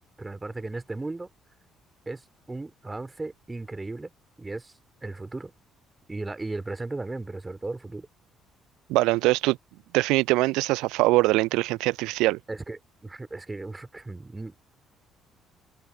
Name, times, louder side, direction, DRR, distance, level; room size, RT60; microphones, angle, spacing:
voice 1, 0.2-1.3 2.0-2.2 2.5-4.1 4.4-4.7 5.0-5.5 6.1-8.1 12.5-14.6, right 2 dB, 20° right, 3.4 m, -36 dB
voice 2, 8.9-9.6 9.9-12.4, right 20 dB, 65° right, 0.3 m, -22 dB
figure-of-eight pair, 45°, 0 cm